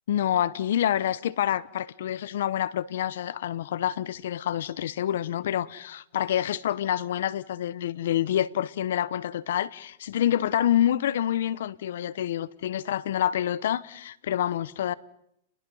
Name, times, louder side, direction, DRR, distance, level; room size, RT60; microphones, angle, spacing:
voice 1, 0.1-14.9, left 11 dB, 75° left, 0.9 m, -27 dB
30.0 x 20.5 x 5.5 m
hypercardioid pair, 145°, 0 cm